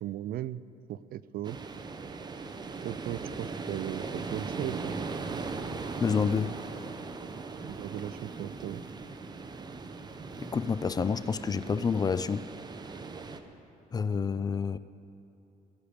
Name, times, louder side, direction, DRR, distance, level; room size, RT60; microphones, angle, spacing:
voice 1, 0.0-0.6 0.9-1.6 2.8-5.0 7.6-8.8, right 12 dB, 60° right, 0.4 m, -37 dB
sound 1, 1.4-13.4, right 4 dB, 25° right, 0.8 m, -39 dB
voice 2, 6.0-6.6 10.4-12.5 13.9-14.8, left 6 dB, 25° left, 0.3 m, -28 dB
20.5 x 9.9 x 5.1 m
cardioid pair, 110°, 17 cm